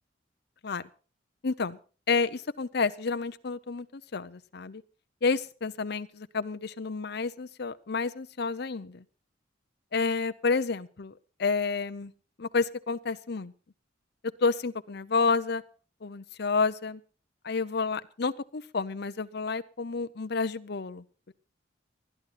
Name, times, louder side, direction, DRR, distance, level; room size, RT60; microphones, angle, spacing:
voice 1, 1.4-1.8 2.1-4.8 5.2-9.0 9.9-11.1 11.4-12.1 12.4-13.5 14.4-15.6 16.0-17.0 17.4-21.3, left 4 dB, 60° left, 12 dB, 0.7 m, -30 dB
20.0 x 12.0 x 4.2 m, 0.37 s
head